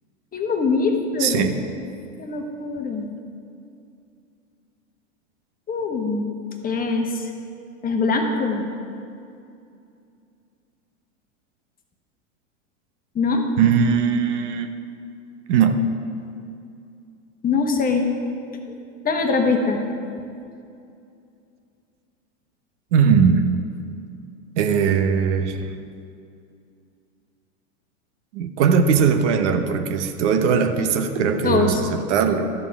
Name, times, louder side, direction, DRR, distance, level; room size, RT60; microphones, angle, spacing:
voice 1, 0.3-1.5 2.2-3.0 5.7-6.3 6.6-7.3 7.8-8.7 13.1-13.4 17.4-18.1 18.7-18.8 19.0-19.8 31.4-31.8, left 4 dB, 20° left, 3 dB, 1.2 m, -22 dB
voice 2, 1.2-1.5 13.6-14.7 15.5-15.8 22.9-23.4 24.6-25.7 28.3-32.5, right 6 dB, 65° right, 7 dB, 1.0 m, -19 dB
12.5 x 6.9 x 4.8 m, 2.5 s
hypercardioid pair, 110°, 39 cm